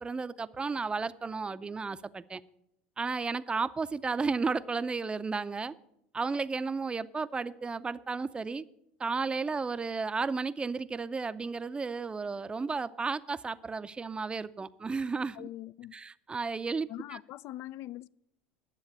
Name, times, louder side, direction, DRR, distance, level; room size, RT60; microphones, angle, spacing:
voice 1, 0.0-2.4 3.0-5.7 6.1-8.6 9.0-15.5 15.9-17.2, right 4 dB, 20° right, 0.5 m, -33 dB
voice 2, 15.3-15.9 16.9-18.1, left 14 dB, 55° left, 0.4 m, -42 dB
10.5 x 7.2 x 8.7 m
supercardioid pair, 100°, 6 cm